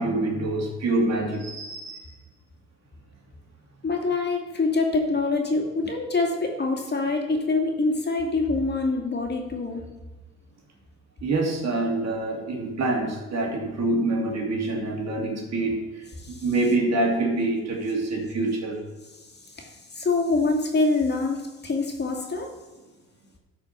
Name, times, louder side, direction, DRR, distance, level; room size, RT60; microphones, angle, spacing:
voice 1, 0.0-2.1 11.2-18.8, right 2 dB, 60° right, 1 dB, 2.6 m, -26 dB
voice 2, 3.8-9.8 16.2-16.4 19.6-22.5, left 3 dB, 35° left, 2 dB, 2.3 m, -25 dB
12.5 x 5.0 x 6.7 m, 1.2 s
cardioid pair, 90°, 30 cm